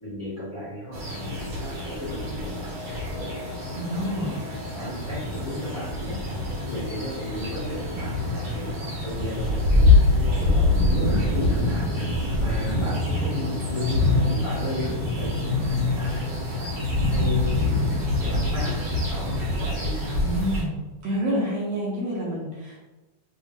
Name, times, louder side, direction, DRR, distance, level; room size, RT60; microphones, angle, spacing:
voice 1, 0.0-3.4 3.9-4.4 4.7-15.5 15.8-17.7 18.2-20.3, left 1 dB, 75° left, -9 dB, 0.7 m, -36 dB
sound 1, 0.9-20.6, left 2 dB, 85° right, 0.9 m, -25 dB
voice 2, 3.7-4.3 20.2-20.7 21.0-22.8, equal, 70° right, -5 dB, 1.6 m, -28 dB
5.7 x 2.5 x 2.9 m, 1.1 s
omnidirectional pair, 3.6 m